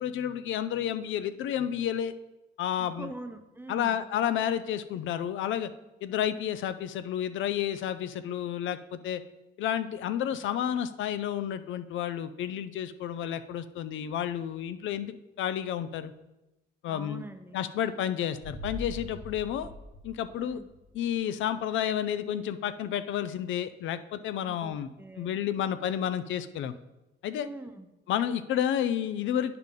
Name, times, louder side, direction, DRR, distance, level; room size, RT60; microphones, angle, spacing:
voice 1, 0.0-2.1 2.6-3.1 3.7-5.7 6.0-9.2 9.6-16.1 16.8-17.2 17.5-19.7 20.0-20.6 20.9-24.9 25.2-26.7 27.2-27.5 28.1-29.6, left 10 dB, 75° left, 12 dB, 0.5 m, -31 dB
voice 2, 2.8-4.1 16.9-17.6 20.3-20.7 24.4-25.4 27.4-27.9, right 2 dB, 10° right, 8 dB, 0.7 m, -44 dB
sound 1, 18.4-21.1 21.4-21.5, left 1 dB, 55° left, 1.2 m, -43 dB
8.9 x 5.8 x 3.7 m, 0.98 s
cardioid pair, 90°, 20 cm